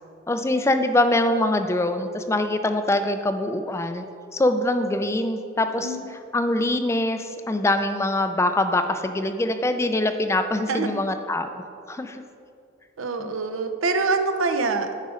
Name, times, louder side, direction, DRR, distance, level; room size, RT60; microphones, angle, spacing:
voice 1, 0.3-4.0 4.3-6.0 6.3-12.2 13.2-13.3, left 1 dB, 15° left, 8 dB, 0.3 m, -24 dB
voice 2, 10.7-11.0 13.0-15.0, right 3 dB, 80° right, 7 dB, 0.7 m, -25 dB
9.5 x 5.2 x 5.0 m, 2.5 s
head